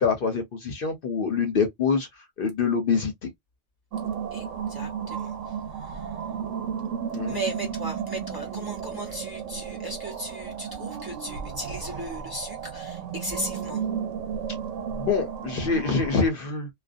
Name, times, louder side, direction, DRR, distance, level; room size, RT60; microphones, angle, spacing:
voice 1, 0.0-2.1 2.4-3.1 7.1-7.4 14.9-16.7, left 5 dB, 55° left, 0.7 m, -25 dB
sound 1, 3.9-16.3, right 7 dB, 90° right, 1.0 m, -33 dB
voice 2, 4.3-6.2 7.3-13.8, right 1 dB, 20° right, 0.8 m, -36 dB
2.4 x 2.3 x 2.4 m
omnidirectional pair, 1.2 m